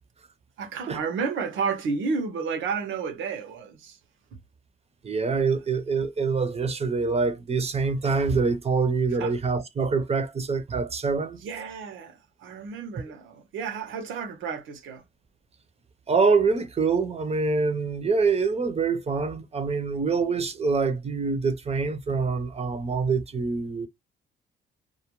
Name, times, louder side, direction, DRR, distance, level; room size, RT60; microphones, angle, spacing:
voice 1, 0.6-4.0 9.1-9.3 11.4-15.0, right 5 dB, 80° right, 0.8 m, -31 dB
voice 2, 5.0-11.4 16.1-23.9, right 4 dB, 30° right, 0.6 m, -25 dB
2.3 x 2.2 x 2.9 m
cardioid pair, 90°, 20 cm